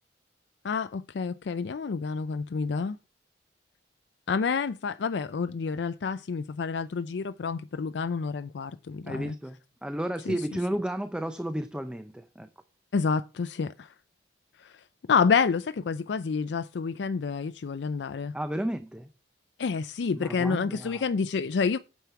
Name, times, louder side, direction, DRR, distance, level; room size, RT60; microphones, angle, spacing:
voice 1, 0.6-3.0 4.3-9.3 12.9-13.9 14.6-14.7 15.1-18.3 19.6-21.8, left 5 dB, 80° left, 0.4 m, -28 dB
voice 2, 9.1-12.5 18.3-19.1 20.1-21.0, right 1 dB, 5° right, 0.5 m, -33 dB
9.2 x 7.2 x 4.6 m
head